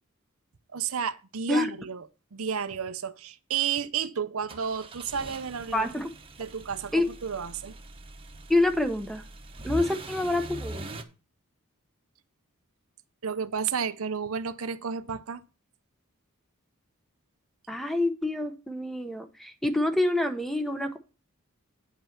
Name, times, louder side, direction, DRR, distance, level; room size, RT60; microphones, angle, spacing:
voice 1, 0.7-2.0 2.3-5.9 6.4-7.7 13.2-15.4, right 7 dB, 75° right, 0.7 m, -32 dB
sound 1, 4.5-11.0, right 1 dB, 25° right, 1.1 m, -42 dB
voice 2, 5.7-6.1 6.9-7.1 8.5-9.2 9.6-10.9 17.7-21.0, left 2 dB, ahead, 0.9 m, -27 dB
9.8 x 5.6 x 5.8 m
head